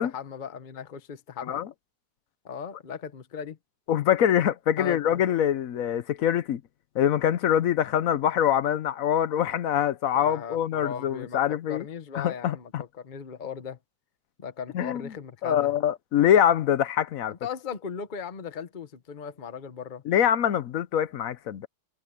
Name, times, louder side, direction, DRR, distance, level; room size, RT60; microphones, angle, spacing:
voice 1, 0.0-1.6 2.4-3.6 4.8-5.2 10.1-13.8 14.4-15.7 17.4-20.0, left 7 dB, 30° left, 1.0 m, -38 dB
voice 2, 3.9-6.6 6.9-11.8 12.1-12.8 14.7-15.0 15.4-17.3 20.1-21.7, left 10 dB, 60° left, 0.9 m, -24 dB
omnidirectional pair, 2.0 m